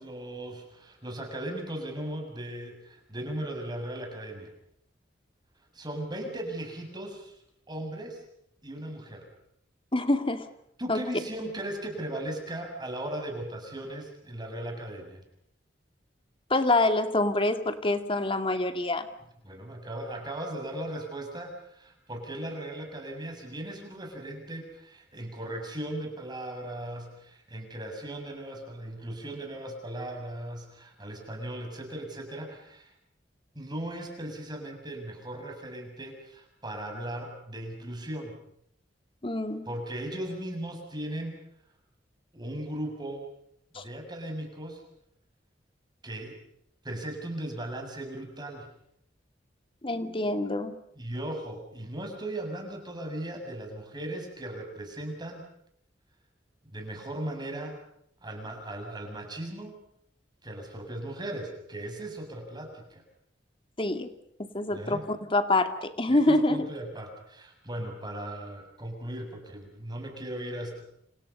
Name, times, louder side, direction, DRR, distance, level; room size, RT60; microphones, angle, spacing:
voice 1, 0.0-4.5 5.7-7.4 7.7-8.2 8.6-9.3 10.8-15.2 19.4-32.9 33.5-38.4 39.7-41.3 42.3-43.3 43.7-44.8 46.0-46.4 46.8-48.7 51.0-55.5 56.7-57.8 58.2-59.8 60.4-63.0 64.7-65.0 66.1-70.8, right 1 dB, 25° right, 3 dB, 7.2 m, -37 dB
voice 2, 9.9-10.5 10.9-11.0 16.5-19.1 39.2-39.7 43.7-43.8 49.8-50.7 63.8-64.1 64.5-66.7, left 2 dB, 30° left, 8 dB, 2.3 m, -26 dB
29.5 x 28.0 x 5.5 m, 0.72 s
head